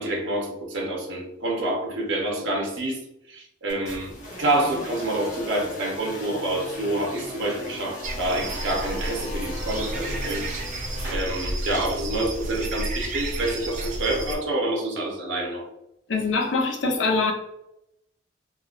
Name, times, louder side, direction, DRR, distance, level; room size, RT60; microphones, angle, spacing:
voice 1, 0.0-3.0 3.3-4.1 4.4-10.4 11.0-15.6, right 1 dB, 70° right, -1 dB, 0.8 m, -27 dB
sound 1, 3.7-11.1, left 1 dB, 40° left, 0.9 m, -38 dB
sound 2, 8.0-14.4, right 1 dB, 40° right, 0.5 m, -31 dB
voice 2, 16.1-17.3, left 3 dB, 70° left, 1 dB, 0.6 m, -23 dB
3.6 x 2.3 x 2.4 m, 0.83 s
head